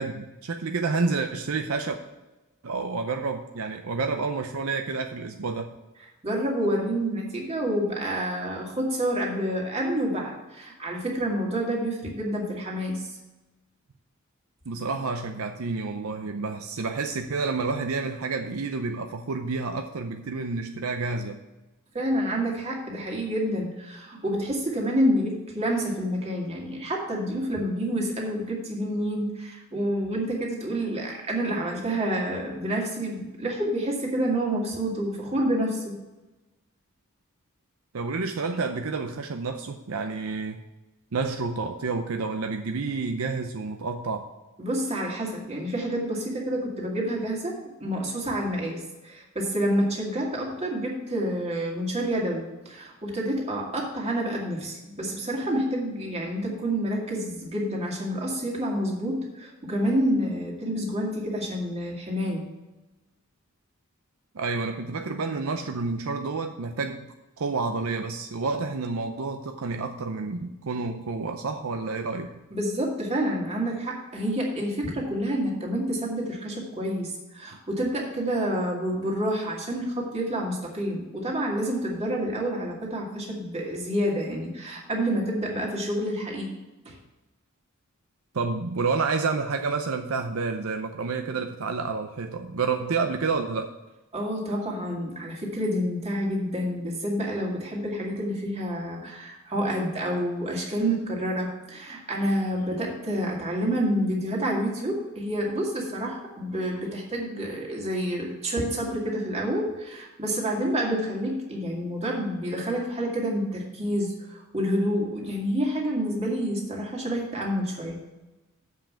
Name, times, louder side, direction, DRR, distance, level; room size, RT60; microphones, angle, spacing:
voice 1, 0.0-2.0 2.6-5.7 14.7-21.4 37.9-40.6 41.1-44.3 64.3-67.1 67.4-72.4 88.3-93.7, right 4 dB, 70° right, 5 dB, 0.6 m, -29 dB
voice 2, 6.2-13.0 21.9-36.0 44.6-62.5 72.5-86.6 86.9-87.0 94.1-118.0, equal, 30° right, -2 dB, 2.2 m, -28 dB
7.5 x 5.6 x 7.3 m, 1.1 s
head